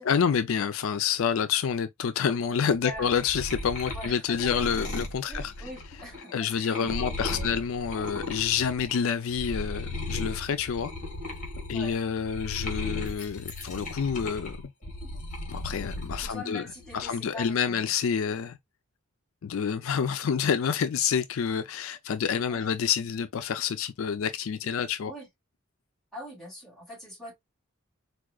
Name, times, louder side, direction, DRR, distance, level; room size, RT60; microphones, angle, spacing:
voice 1, 0.0-5.7 6.3-10.9 11.7-14.7 15.5-16.7 16.9-18.6 19.4-25.1, left 7 dB, 70° left, 0.4 m, -28 dB
sound 1, 2.7-9.0 9.3-16.3 16.7-17.4, left 2 dB, 40° left, 1.5 m, -36 dB
voice 2, 3.9-4.5 5.3-7.6 11.7-12.0 16.2-17.8 22.5-22.7 25.0-25.3 26.1-27.3, equal, ahead, 2.4 m, -43 dB
4.7 x 2.4 x 2.2 m
head